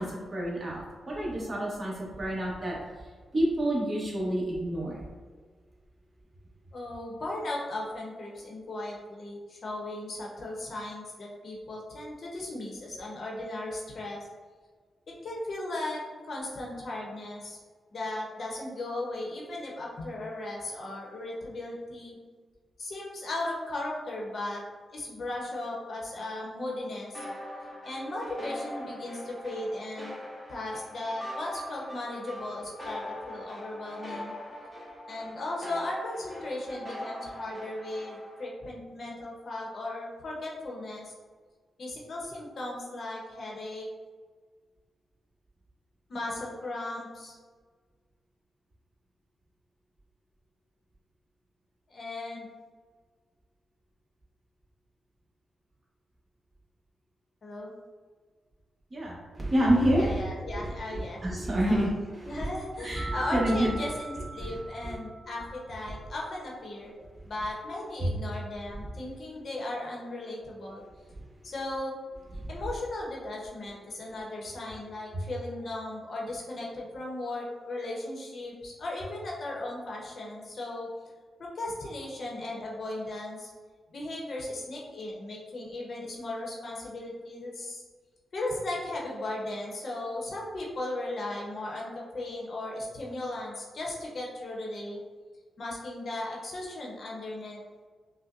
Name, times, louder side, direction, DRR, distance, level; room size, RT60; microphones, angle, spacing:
voice 1, 0.0-2.8 3.3-5.0 58.9-60.2 60.5-62.5 62.8-63.7 64.4-64.9 68.0-68.1 72.4-72.5 75.1-75.2, right 1 dB, 30° right, -4 dB, 1.1 m, -28 dB
voice 2, 6.7-14.2 15.1-16.0 16.3-17.6 17.9-22.2 22.8-24.6 24.9-27.3 27.8-30.2 30.5-34.3 35.1-41.1 41.8-43.9 46.1-47.4 51.9-52.5 57.4-57.7 59.9-61.2 61.7-61.9 62.3-66.9 67.2-70.8 71.4-72.0 72.5-80.9 81.4-83.5 83.9-87.8 88.3-95.0 95.6-97.6, left 2 dB, 55° left, -2 dB, 0.8 m, -36 dB
sound 1, 27.1-38.4, left 1 dB, 15° right, 1.0 m, -41 dB
sound 2, 63.0-65.7, right 3 dB, 20° left, 1.0 m, -41 dB
5.2 x 2.1 x 2.5 m, 1.5 s
cardioid pair, 100°, 0 cm